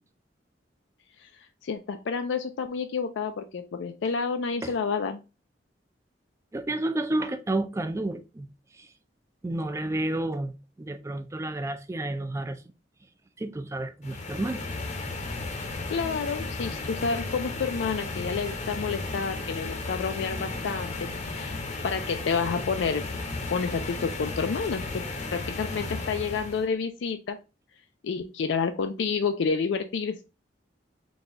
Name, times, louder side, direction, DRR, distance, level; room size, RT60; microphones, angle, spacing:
voice 1, 1.6-5.2 15.9-23.0 23.5-24.8 25.3-27.4 28.0-30.2, left 5 dB, 80° left, 0.4 m, -29 dB
voice 2, 6.5-8.5 8.7-8.9 9.4-12.6 13.4-14.6, right 2 dB, 15° right, 0.3 m, -31 dB
sound 1, 14.0-26.7, left 3 dB, 40° left, 0.7 m, -34 dB
4.0 x 2.3 x 3.6 m
head